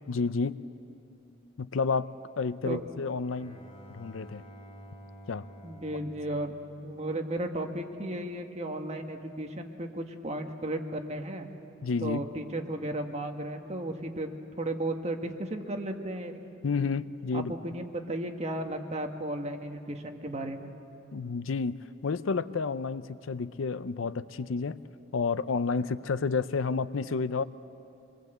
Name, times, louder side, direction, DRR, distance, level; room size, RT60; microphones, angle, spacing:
voice 1, 0.1-0.6 1.6-2.1 2.4-3.6 3.9-4.4 5.3-5.5 11.8-12.3 16.6-17.5 21.1-24.8 25.1-27.4, left 4 dB, 70° left, 15 dB, 0.5 m, -30 dB
Bowed string instrument, 3.2-7.6, equal, 30° left, 2.2 m, -50 dB
voice 2, 5.6-6.5 6.8-11.5 12.0-16.4 17.3-20.7, right 1 dB, 35° right, 4 dB, 1.5 m, -34 dB
25.0 x 21.0 x 7.9 m, 2.8 s
head